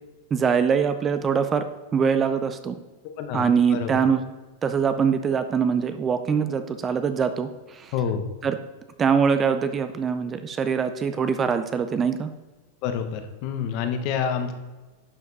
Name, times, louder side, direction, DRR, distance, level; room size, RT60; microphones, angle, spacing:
voice 1, 0.3-1.7 1.9-2.8 3.3-4.3 4.6-7.9 8.4-8.6 9.0-12.3, right 6 dB, 20° right, 9 dB, 0.5 m, -23 dB
voice 2, 3.1-3.9 7.9-8.2 12.8-14.5, left 7 dB, 45° left, 7 dB, 1.1 m, -28 dB
11.0 x 5.2 x 4.1 m, 1.2 s
supercardioid pair, 145°, 0 cm